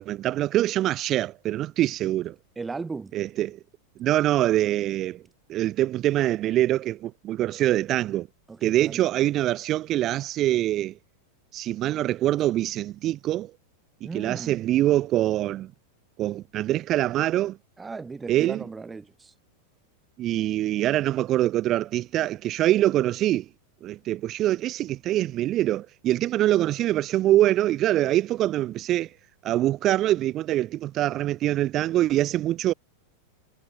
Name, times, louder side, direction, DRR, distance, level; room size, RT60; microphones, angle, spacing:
voice 1, 0.0-2.4 3.1-3.6 4.0-5.2 5.5-8.3 8.6-11.0 11.5-13.5 14.0-15.7 16.2-17.6 18.3-18.6 20.2-23.5 23.8-29.1 29.4-32.7, right 14 dB, 40° right, 1.7 m, -24 dB
voice 2, 2.6-3.2 8.5-9.0 14.0-14.6 17.8-19.3, right 4 dB, 15° right, 1.9 m, -36 dB
hypercardioid pair, 115°, 0 cm